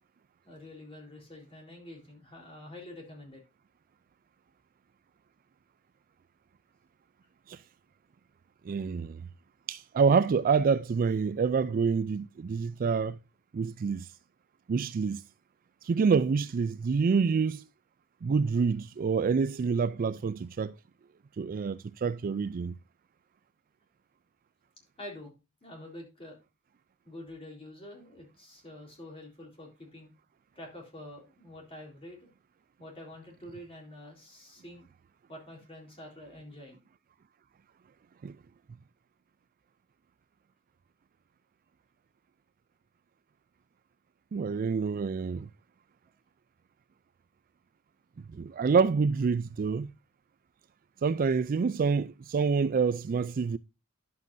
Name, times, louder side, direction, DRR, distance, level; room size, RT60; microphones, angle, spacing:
voice 1, 0.4-3.4 8.6-8.8 25.0-25.3 25.6-26.4 27.0-30.1 30.6-32.3 32.8-34.8 35.3-36.8, left 1 dB, 25° left, 3.7 m, -47 dB
voice 2, 8.7-9.2 9.7-13.2 13.5-14.1 14.7-15.2 15.8-17.6 18.2-20.7 21.4-22.7 38.2-38.3 44.3-45.5 48.3-49.9 51.0-53.6, right 5 dB, 40° right, 0.3 m, -27 dB
11.0 x 7.5 x 2.6 m
head